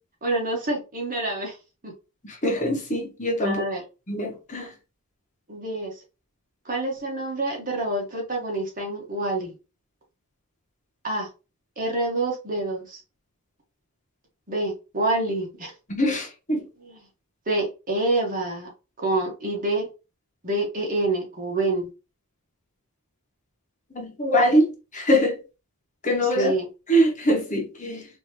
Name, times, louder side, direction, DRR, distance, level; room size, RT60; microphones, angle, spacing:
voice 1, 0.2-1.6 1.8-1.9 3.4-3.8 5.5-6.0 6.6-9.5 11.0-11.3 11.8-13.0 14.5-15.7 16.8-17.1 17.4-18.7 19.0-19.9 20.4-21.9 26.3-26.7, right 2 dB, 40° right, 1.6 m, -27 dB
voice 2, 2.4-3.6 4.1-4.7 15.9-16.7 23.9-25.4 26.0-26.5 26.9-28.0, equal, 35° left, 1.4 m, -23 dB
4.3 x 3.1 x 3.2 m
head